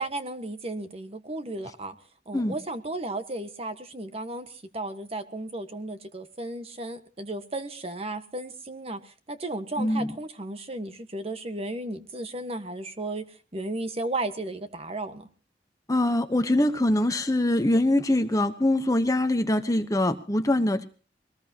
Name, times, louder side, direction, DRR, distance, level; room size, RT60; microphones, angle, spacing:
voice 1, 0.0-2.0 2.3-15.3, right 2 dB, 35° right, 8 dB, 1.4 m, -34 dB
voice 2, 9.8-10.1 15.9-20.8, left 1 dB, 20° left, 9 dB, 1.0 m, -23 dB
22.0 x 19.5 x 2.9 m, 0.38 s
head